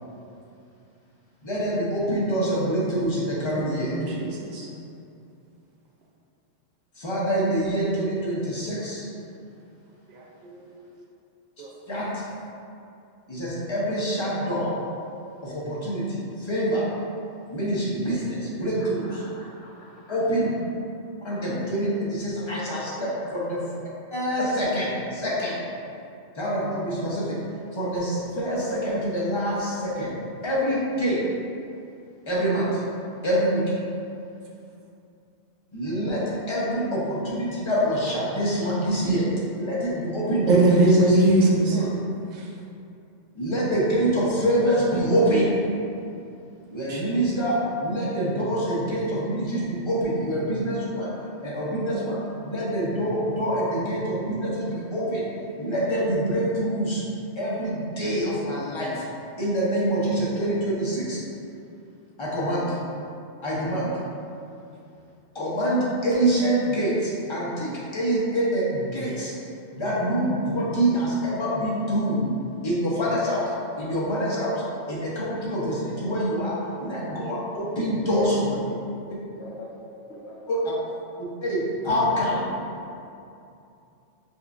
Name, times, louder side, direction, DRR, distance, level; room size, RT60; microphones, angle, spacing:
voice 1, 1.4-4.0 7.0-9.1 11.9-12.2 13.3-14.8 15.4-16.8 17.5-19.2 20.1-20.5 21.2-23.6 24.1-25.6 26.4-27.4 27.7-30.1 30.4-31.2 32.3-32.8 33.2-33.7 35.7-39.2 39.6-41.2 41.7-41.9 43.3-45.5 46.7-51.1 51.4-55.3 55.6-57.0 57.4-59.0 59.4-61.2 62.2-62.8 63.4-63.9 65.3-69.3 69.7-72.3 72.6-73.5 73.8-74.6 74.9-76.5 76.8-78.5 80.5-80.6 81.2-82.4, right 1 dB, 30° left, -7 dB, 0.6 m, -25 dB
voice 2, 3.5-4.7 10.1-10.7 11.6-11.7 40.4-41.8 42.3-42.4 46.9-47.0, right 2 dB, 60° right, -3 dB, 0.4 m, -21 dB
voice 3, 19.8-20.2 78.0-78.1 79.4-79.7 80.1-80.4, left 2 dB, 65° left, -4 dB, 0.8 m, -42 dB
5.2 x 2.4 x 2.4 m, 2.6 s
omnidirectional pair, 1.3 m